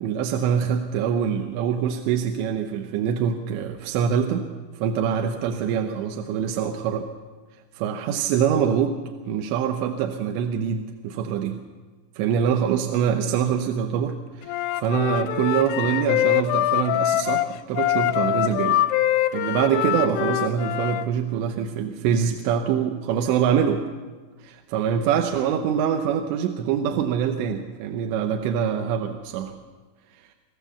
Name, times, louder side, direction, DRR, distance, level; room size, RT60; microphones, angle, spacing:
voice 1, 0.0-4.5 4.7-7.1 7.8-9.0 9.3-11.6 12.2-18.8 19.3-23.8 24.4-29.5 30.2-30.3, right 8 dB, 75° right, 4 dB, 3.0 m, -24 dB
Wind instrument woodwind instrument, 14.4-21.1, left 12 dB, 80° left, 2.5 m, -24 dB
27.5 x 14.5 x 7.1 m, 1.4 s
omnidirectional pair, 5.5 m